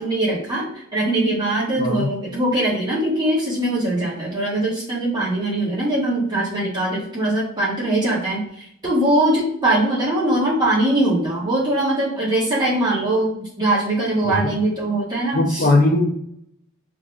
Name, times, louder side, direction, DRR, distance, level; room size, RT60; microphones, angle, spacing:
voice 1, 0.0-15.7, right 1 dB, 20° right, -6 dB, 1.6 m, -21 dB
voice 2, 1.8-2.1 14.2-14.4 15.3-16.1, left 2 dB, 45° left, -2 dB, 0.5 m, -18 dB
5.3 x 3.5 x 2.4 m, 0.71 s
head